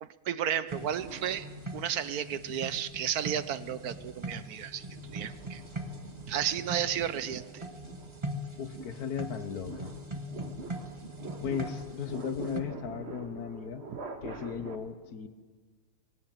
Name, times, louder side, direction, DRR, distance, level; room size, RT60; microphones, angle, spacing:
voice 1, 0.0-1.5 1.7-5.6 6.3-7.7 11.4-11.5 13.9-14.0, right 9 dB, 80° right, 14 dB, 1.4 m, -33 dB
sound 1, 0.7-12.6, right 1 dB, 20° right, 1.4 m, -42 dB
sound 2, 0.7-2.1 2.7-14.8, right 3 dB, 45° right, 1.7 m, -47 dB
Wind instrument woodwind instrument, 4.5-14.2, left 7 dB, 25° left, 3.2 m, -58 dB
voice 2, 8.6-9.9 11.4-13.8 14.2-15.3, left 7 dB, 80° left, 11 dB, 1.7 m, -36 dB
19.0 x 19.0 x 9.1 m, 1.4 s
omnidirectional pair, 1.6 m